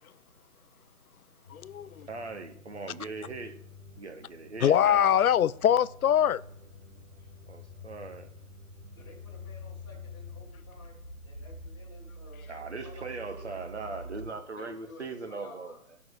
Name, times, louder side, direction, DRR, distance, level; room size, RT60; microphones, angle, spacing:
sound 1, 1.4-15.2, left 1 dB, 5° right, 1.9 m, -47 dB
voice 1, 1.5-2.1 4.6-6.4, left 9 dB, 75° left, 0.5 m, -23 dB
voice 2, 2.1-3.6 4.0-5.1 7.5-8.3 12.5-16.0, right 3 dB, 50° right, 1.3 m, -40 dB
voice 3, 8.9-11.0 11.2-13.5 14.5-15.8, left 2 dB, 15° left, 2.2 m, -52 dB
12.0 x 6.0 x 6.3 m
hypercardioid pair, 180°, 43 cm